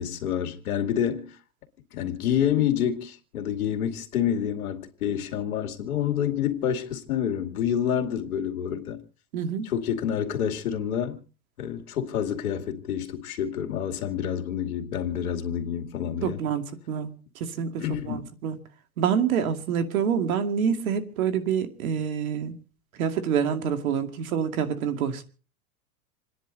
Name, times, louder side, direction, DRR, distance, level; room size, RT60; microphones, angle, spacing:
voice 1, 0.0-1.4 1.9-9.0 9.6-11.2 11.6-16.4 17.8-18.2, left 9 dB, 80° left, 2.4 m, -28 dB
voice 2, 9.3-9.7 16.2-18.6 19.0-22.6 23.0-25.2, right 7 dB, 70° right, 2.4 m, -27 dB
28.0 x 10.5 x 4.0 m
hypercardioid pair, 130°, 44 cm